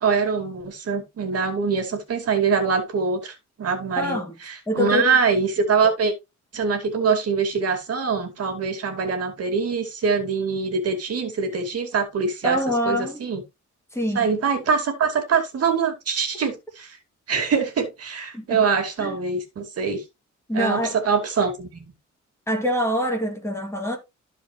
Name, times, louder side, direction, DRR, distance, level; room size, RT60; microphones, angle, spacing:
voice 1, 0.0-4.2 4.5-6.1 6.5-12.6 12.9-13.4 14.2-17.0 17.3-20.0 20.5-20.8 21.1-21.8, right 5 dB, 55° right, 2.4 m, -24 dB
voice 2, 4.0-4.3 4.7-5.2 12.4-13.2 13.9-14.3 16.4-16.5 18.3-18.7 19.0-19.2 20.5-21.0 22.5-24.0, equal, 10° left, 2.3 m, -25 dB
13.0 x 5.0 x 3.1 m
wide cardioid pair, 180°, 29 cm